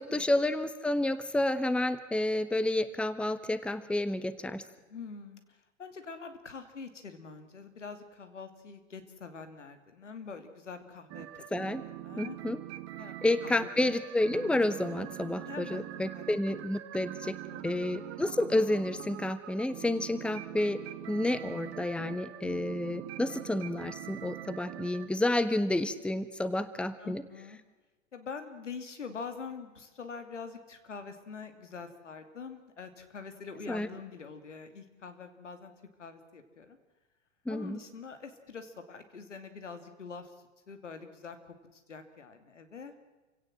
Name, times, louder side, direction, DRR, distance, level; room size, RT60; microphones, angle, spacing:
voice 1, 0.0-4.6 11.5-11.8 12.2-12.6 13.2-17.4 17.6-27.2 33.7-33.9 37.4-37.8, left 1 dB, 5° left, 13 dB, 1.2 m, -30 dB
voice 2, 4.9-11.5 12.0-12.4 13.0-13.2 13.4-13.7 15.5-15.9 16.1-16.3 17.2-17.8 27.0-27.6 28.1-35.7 36.0-36.8 37.5-40.3 40.7-42.9, left 5 dB, 80° left, 8 dB, 2.7 m, -45 dB
sound 1, 11.1-25.1, right 15 dB, 40° right, 1.6 m, -43 dB
28.5 x 17.0 x 7.6 m, 1.2 s
figure-of-eight pair, 90°, 36 cm